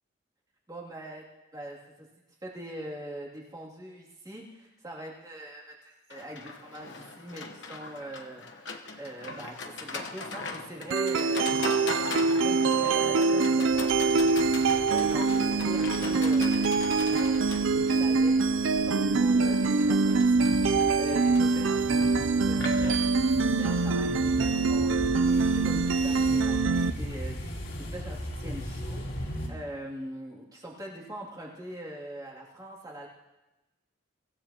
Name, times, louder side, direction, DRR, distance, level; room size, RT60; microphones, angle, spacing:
voice 1, 0.7-1.2 1.5-2.1 2.4-11.8 12.2-16.5 16.9-23.2 23.6-33.1, right 1 dB, 20° right, -4 dB, 2.6 m, -42 dB
Livestock farm animals working animals, 6.1-24.1, left 4 dB, 65° left, 1.1 m, -40 dB
sound 1, 10.9-26.9, right 4 dB, 70° right, 0.5 m, -24 dB
sound 2, 13.7-29.5, equal, 85° left, 3.8 m, -39 dB
24.0 x 15.5 x 2.9 m, 1.0 s
head